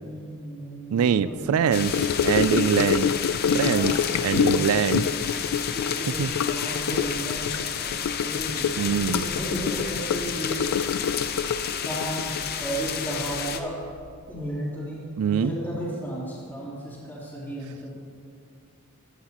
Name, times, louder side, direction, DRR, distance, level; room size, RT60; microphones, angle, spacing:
voice 1, 0.0-1.8 3.7-4.0 4.3-4.7 5.7-7.5 7.8-10.7 11.8-13.7 14.3-17.9, right 1 dB, 10° left, -8 dB, 3.5 m, -34 dB
voice 2, 0.9-2.0 2.2-3.1 3.5-3.9 4.2-5.1 6.2-6.3 8.8-9.3 15.2-15.5, right 7 dB, 75° right, 15 dB, 0.3 m, -23 dB
sound 1, 1.7-13.6, left 7 dB, 45° left, 0.7 m, -31 dB
Gurgling / Sink (filling or washing) / Trickle dribble, 1.9-13.6 13.8-14.2 14.4-14.5, left 7 dB, 85° left, 0.4 m, -27 dB
14.0 x 12.5 x 3.0 m, 2.2 s
head